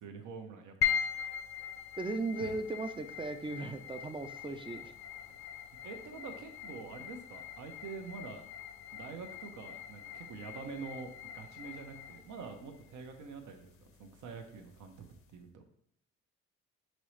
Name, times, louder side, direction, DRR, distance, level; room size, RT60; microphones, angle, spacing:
voice 1, 0.0-1.0 2.4-2.6 5.8-8.4 8.9-14.9 15.3-15.6, right 5 dB, 75° right, 5 dB, 0.8 m, -46 dB
sound 1, 0.8-15.3, left 9 dB, 45° left, 0.5 m, -41 dB
voice 2, 2.0-4.9, right 3 dB, 20° right, 9 dB, 0.3 m, -37 dB
5.3 x 3.1 x 3.2 m, 0.67 s
cardioid pair, 90°, 30 cm